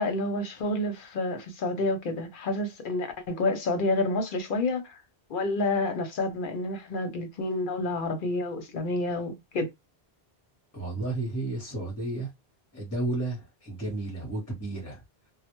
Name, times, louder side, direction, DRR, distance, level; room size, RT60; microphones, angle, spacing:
voice 1, 0.0-5.0 5.3-9.7, left 2 dB, 60° left, 0.7 m, -29 dB
voice 2, 10.7-12.3 12.7-15.0, right 2 dB, 20° left, 0.7 m, -32 dB
2.1 x 2.1 x 2.9 m
omnidirectional pair, 1.1 m